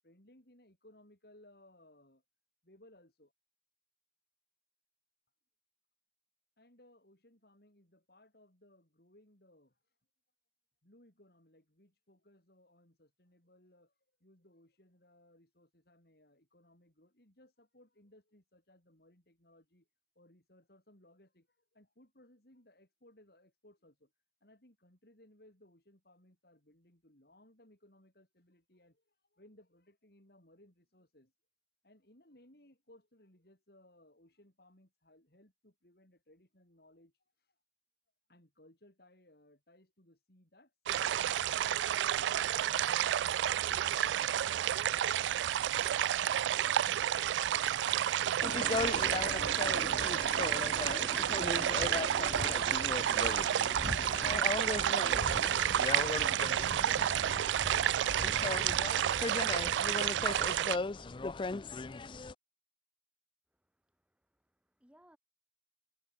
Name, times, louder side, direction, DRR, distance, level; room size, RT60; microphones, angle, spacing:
voice 1, 0.0-2.2 2.6-3.3 6.6-9.8 10.8-13.9 14.2-19.9 20.2-24.1 24.4-31.3 31.8-37.1 38.3-41.1 41.4-46.1 46.3-48.0 60.4-61.3, left 1 dB, 60° left, 5.2 m, -63 dB
sound 1, 40.9-60.8, right 11 dB, 85° right, 0.3 m, -30 dB
sound 2, 48.4-62.3, left 3 dB, 30° left, 0.4 m, -37 dB
voice 2, 63.5-65.2, equal, 5° right, 3.7 m, -67 dB
head